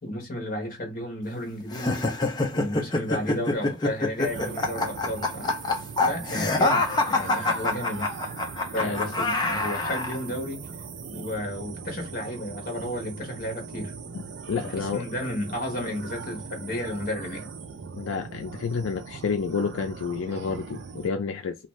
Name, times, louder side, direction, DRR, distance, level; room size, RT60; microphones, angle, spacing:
voice 1, 0.0-2.0 2.5-5.5 6.1-8.1 8.7-10.7 11.1-13.9 14.6-17.5, left 1 dB, 45° left, 1.1 m, -32 dB
sound 1, 1.7-10.2, left 2 dB, 20° left, 0.4 m, -26 dB
sound 2, 4.2-21.1, right 5 dB, 60° right, 0.4 m, -40 dB
voice 2, 14.1-15.1 18.0-21.6, left 5 dB, 90° left, 0.4 m, -30 dB
2.6 x 2.3 x 3.0 m
head